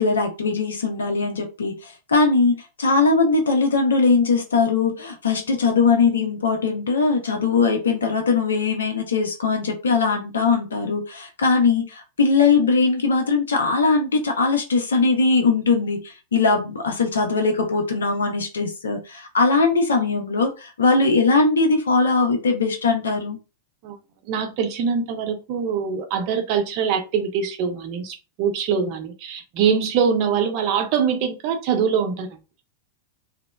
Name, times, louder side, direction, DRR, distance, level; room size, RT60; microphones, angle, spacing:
voice 1, 0.0-23.4, left 4 dB, 70° left, 4 dB, 0.6 m, -20 dB
voice 2, 24.3-32.3, right 6 dB, 45° right, 5 dB, 0.6 m, -23 dB
2.8 x 2.0 x 2.2 m, 0.30 s
figure-of-eight pair, 90°, 0 cm